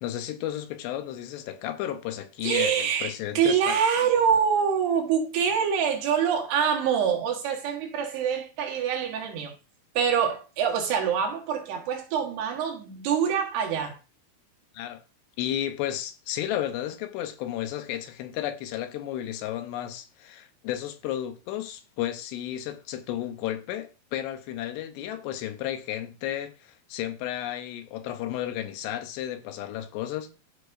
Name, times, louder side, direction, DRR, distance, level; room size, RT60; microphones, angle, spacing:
voice 1, 0.0-3.8 14.7-15.0 15.4-30.3, left 12 dB, 85° left, 3.0 m, -33 dB
voice 2, 2.4-9.5 9.9-14.0, right 7 dB, 75° right, 3.5 m, -25 dB
14.0 x 5.1 x 2.6 m
omnidirectional pair, 4.9 m